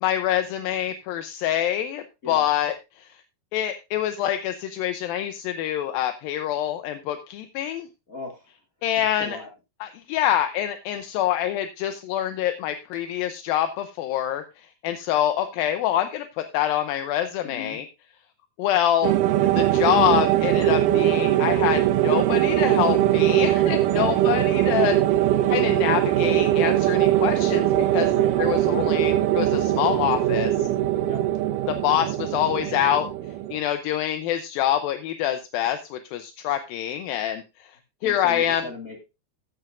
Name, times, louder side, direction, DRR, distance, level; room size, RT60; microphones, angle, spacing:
voice 1, 0.0-2.7 3.5-7.9 8.8-9.4 9.8-14.4 14.8-16.2 16.5-17.9 18.6-19.2 19.5-25.0 25.5-28.1 28.4-30.7 31.8-33.1 33.5-37.4 38.0-38.6, left 11 dB, 80° left, 8 dB, 2.3 m, -25 dB
voice 2, 8.1-8.5 9.0-9.5 17.4-17.8 23.9-24.2 28.1-28.3 31.1-31.2 38.0-39.0, left 3 dB, 50° left, 2 dB, 1.0 m, -38 dB
sound 1, 19.0-33.6, right 13 dB, 80° right, 1.9 m, -21 dB
14.5 x 9.1 x 2.5 m, 0.27 s
omnidirectional pair, 4.6 m